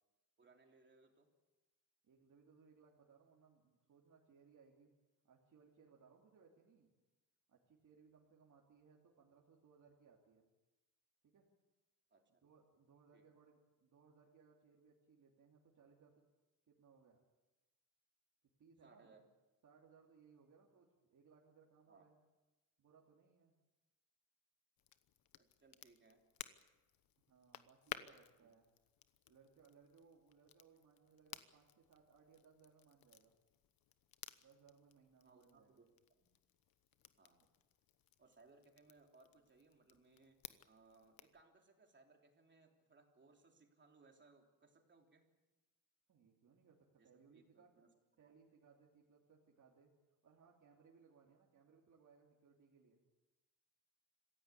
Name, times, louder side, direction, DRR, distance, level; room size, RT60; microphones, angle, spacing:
voice 1, 0.4-1.3 12.1-12.2 13.1-13.2 18.8-19.3 21.9-22.1 25.4-26.2 35.2-35.9 36.2-36.3 37.2-37.4 38.2-40.4 40.6-45.3 47.0-47.9 48.2-48.3, right 3 dB, 35° right, 2 dB, 3.4 m, -67 dB
voice 2, 2.0-4.9 5.2-6.9 7.5-10.5 11.2-11.5 12.3-16.2 16.7-17.2 18.6-19.2 19.6-22.2 22.8-23.5 27.3-28.7 29.3-33.3 34.4-35.8 46.1-47.7 48.2-49.9 50.2-53.0, right 5 dB, 60° right, -2 dB, 3.0 m, -67 dB
Crackle, 24.8-41.4, left 11 dB, 85° left, 1.1 m, -57 dB
26.0 x 15.5 x 8.3 m, 1.1 s
cardioid pair, 130°, 34 cm